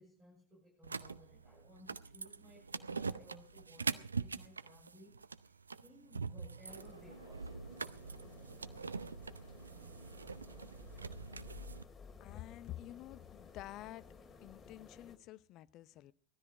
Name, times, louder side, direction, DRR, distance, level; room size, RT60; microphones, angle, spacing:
voice 1, 0.0-5.6 5.8-7.9, equal, 20° right, -2 dB, 7.6 m, -60 dB
sound 1, 0.8-11.8, right 4 dB, 80° right, 0.6 m, -43 dB
sound 2, 6.7-15.2, left 5 dB, 20° left, 2.6 m, -56 dB
voice 2, 12.2-14.1 14.4-16.1, left 14 dB, 45° left, 18 dB, 0.7 m, -49 dB
17.5 x 13.0 x 4.9 m, 0.43 s
figure-of-eight pair, 80°, 0 cm